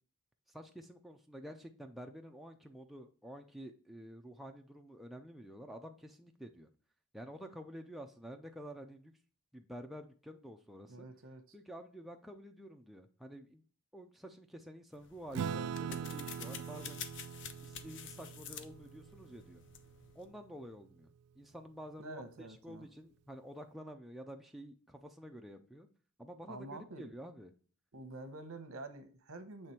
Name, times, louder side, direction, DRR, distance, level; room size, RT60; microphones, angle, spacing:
voice 1, 0.5-6.7 7.1-9.1 9.5-11.1 11.5-13.6 13.9-17.0 17.6-19.6 20.2-21.1 21.4-25.9 26.2-27.5, equal, ahead, 3 dB, 0.4 m, -49 dB
voice 2, 10.9-11.6 22.0-22.9 26.5-27.2 27.9-29.7, right 2 dB, 65° right, 9 dB, 0.9 m, -48 dB
sound 1, 14.9-20.3, left 8 dB, 55° left, 0.6 m, -49 dB
Acoustic guitar / Strum, 15.3-20.2, right 7 dB, 90° right, 0.3 m, -42 dB
7.6 x 3.3 x 4.3 m, 0.41 s
head